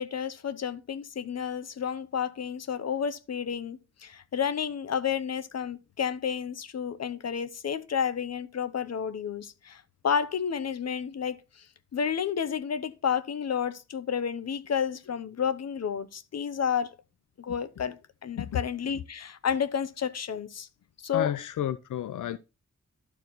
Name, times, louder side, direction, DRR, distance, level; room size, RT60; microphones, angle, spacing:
voice 1, 0.0-11.6 11.9-16.9 17.4-20.7 21.0-21.3, left 7 dB, 60° left, 0.8 m, -31 dB
voice 2, 21.1-22.4, left 10 dB, 90° left, 0.5 m, -31 dB
11.5 x 4.7 x 3.9 m
wide cardioid pair, 125°, 30 cm